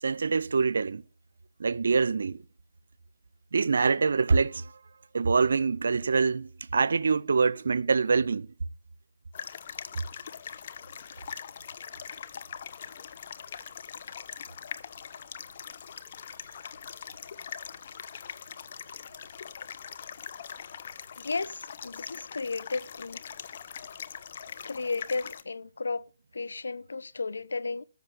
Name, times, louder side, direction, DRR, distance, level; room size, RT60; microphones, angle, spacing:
voice 1, 0.0-1.0 1.6-2.4 3.5-4.7 5.1-8.5, right 4 dB, 65° right, 0.6 m, -25 dB
sound 1, 9.3-25.4, left 7 dB, 40° left, 0.9 m, -42 dB
voice 2, 21.2-23.2 24.6-26.1 26.3-27.8, left 4 dB, 75° left, 0.8 m, -34 dB
13.5 x 6.4 x 8.2 m
figure-of-eight pair, 155°, 0 cm